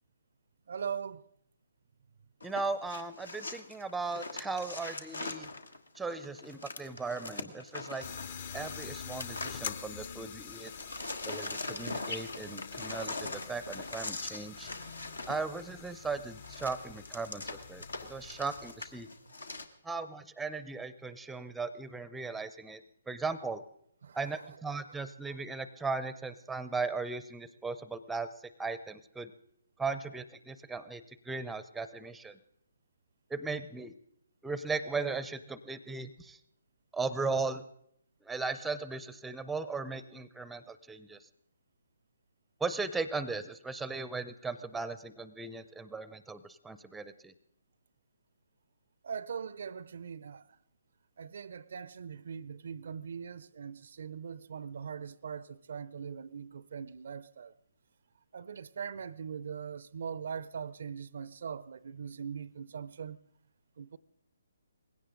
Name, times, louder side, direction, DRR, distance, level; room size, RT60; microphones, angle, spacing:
voice 1, 0.7-1.2 24.0-24.2 24.4-24.6 49.0-50.4 51.2-57.5 58.3-63.2 63.8-64.0, right 7 dB, 60° right, 0.5 m, -41 dB
sound 1, 2.4-10.1 10.4-19.6, left 3 dB, 80° left, 1.4 m, -42 dB
voice 2, 2.4-5.5 6.0-8.1 8.5-10.7 11.3-14.7 15.3-19.1 19.8-23.6 24.1-28.3 28.6-29.3 29.8-32.4 33.3-33.9 34.4-36.4 36.9-37.6 38.2-41.2 42.6-47.3, right 4 dB, 5° right, 0.6 m, -37 dB
sound 2, 8.0-19.1, left 7 dB, 45° left, 0.8 m, -46 dB
19.5 x 16.5 x 3.8 m
figure-of-eight pair, 140°, 0 cm